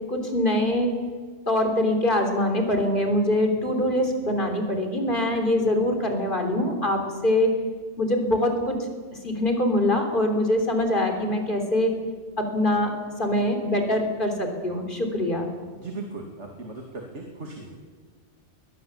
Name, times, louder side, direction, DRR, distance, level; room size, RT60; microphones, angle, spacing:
voice 1, 0.1-0.9 1.5-7.5 8.0-8.8 9.2-11.9 12.4-12.9 13.2-15.5, left 1 dB, 45° left, 4 dB, 3.6 m, -23 dB
voice 2, 15.8-17.8, right 3 dB, 75° right, 2 dB, 2.8 m, -37 dB
21.5 x 21.0 x 7.2 m, 1.5 s
omnidirectional pair, 1.2 m